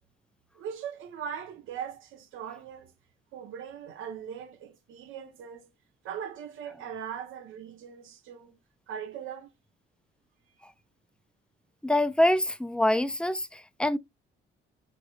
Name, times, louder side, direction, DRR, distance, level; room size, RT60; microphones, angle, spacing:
voice 1, 0.5-2.9 3.3-5.7 6.0-8.6 8.9-9.5, right 8 dB, 85° right, 1.1 m, -40 dB
voice 2, 11.8-14.0, left 1 dB, 5° left, 0.6 m, -25 dB
6.0 x 3.3 x 2.5 m
cardioid pair, 90°, 20 cm